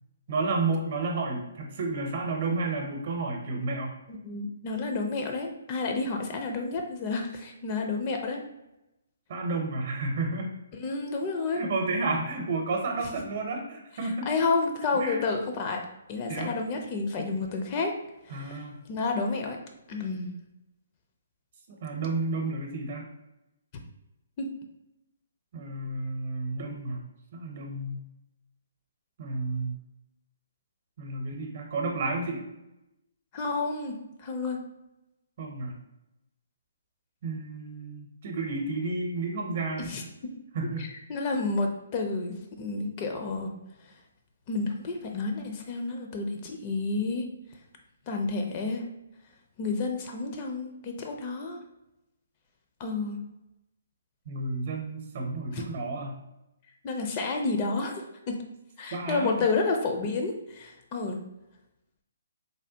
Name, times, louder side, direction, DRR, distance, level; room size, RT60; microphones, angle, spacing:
voice 1, 0.3-3.9 9.3-10.5 11.5-14.3 14.9-15.2 16.3-16.6 18.3-18.8 21.7-23.1 25.5-27.0 27.3-28.0 29.2-29.8 31.0-32.4 35.4-35.8 37.2-39.9 40.5-40.9 54.3-56.2 58.9-59.4, right 3 dB, 50° right, 1 dB, 0.7 m, -31 dB
voice 2, 4.1-8.4 10.7-11.6 14.3-15.8 16.1-17.9 18.3-18.6 18.9-19.6 19.9-20.3 24.4-24.5 33.3-34.6 39.8-40.0 40.8-43.5 44.5-47.3 48.1-48.9 49.6-51.6 52.8-53.2 55.5-55.6 56.8-58.4 58.8-61.2, left 3 dB, 35° left, 3 dB, 0.4 m, -30 dB
3.3 x 2.2 x 2.7 m, 0.92 s
figure-of-eight pair, 135°, 0 cm